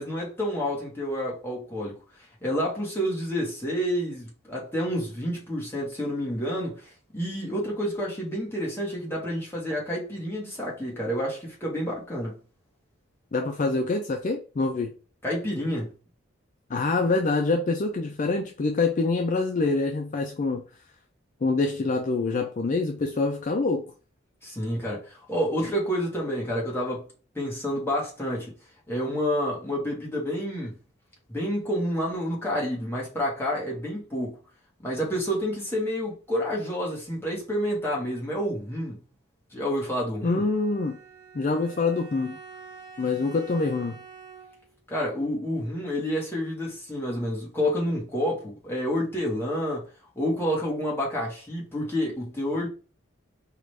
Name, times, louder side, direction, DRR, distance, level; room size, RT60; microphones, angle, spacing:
voice 1, 0.0-2.0 2.4-12.4 15.2-15.9 24.4-27.1 27.3-28.5 28.9-30.8 31.3-34.4 34.8-39.0 39.5-40.4 44.9-49.9 50.1-52.7, equal, 10° left, 1.3 m, -29 dB
voice 2, 13.3-14.9 16.7-20.6 21.4-23.9 40.2-41.0 41.3-42.4 43.0-44.0, left 3 dB, 40° left, 0.4 m, -25 dB
Bowed string instrument, 40.3-44.8, right 5 dB, 15° right, 1.2 m, -47 dB
4.8 x 2.5 x 3.2 m
head